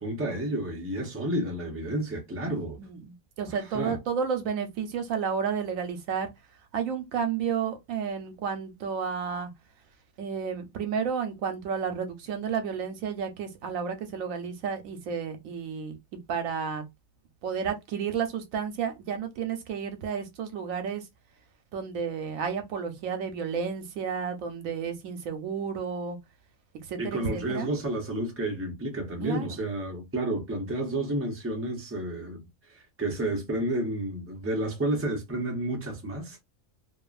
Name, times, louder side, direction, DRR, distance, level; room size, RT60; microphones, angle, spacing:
voice 1, 0.0-2.8 3.5-4.0 27.0-36.4, right 1 dB, 15° right, 0.6 m, -31 dB
voice 2, 2.5-6.3 6.7-9.5 10.2-16.8 17.4-21.0 21.7-26.2 26.9-27.7 29.2-29.5, right 6 dB, 85° right, 1.1 m, -31 dB
2.8 x 2.4 x 2.4 m
omnidirectional pair, 1.4 m